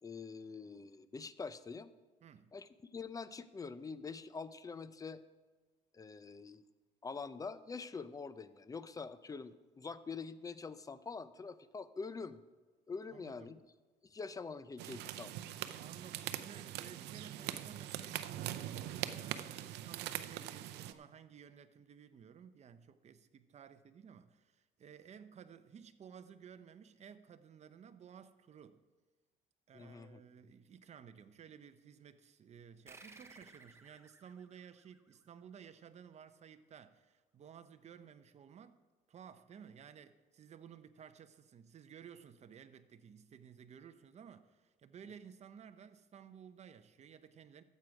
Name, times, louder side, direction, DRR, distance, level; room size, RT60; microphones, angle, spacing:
voice 1, 0.0-1.9 2.5-5.2 5.9-6.6 7.0-12.4 12.9-13.6 14.0-15.4 29.7-30.2, left 4 dB, 20° left, 0.5 m, -45 dB
voice 2, 2.2-2.6 13.1-13.6 15.8-28.8 29.7-38.8 39.1-47.6, right 7 dB, 40° right, 0.7 m, -55 dB
sound 1, 14.8-20.9, right 12 dB, 85° right, 0.6 m, -42 dB
sound 2, 32.9-35.8, right 3 dB, 15° right, 0.9 m, -59 dB
14.0 x 7.8 x 4.8 m
cardioid pair, 110°, 17 cm